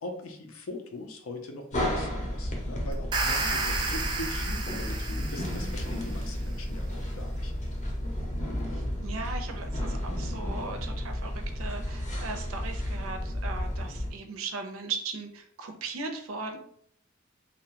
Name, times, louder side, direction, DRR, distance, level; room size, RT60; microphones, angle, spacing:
voice 1, 0.0-7.5, left 2 dB, 85° left, 5 dB, 0.5 m, -41 dB
sound 1, 1.7-14.1, equal, 35° left, 0.6 m, -32 dB
sound 2, 2.9-6.1, right 3 dB, 20° right, 0.3 m, -32 dB
voice 2, 8.7-16.6, right 4 dB, 85° right, 5 dB, 0.5 m, -38 dB
2.6 x 2.1 x 2.8 m, 0.66 s
head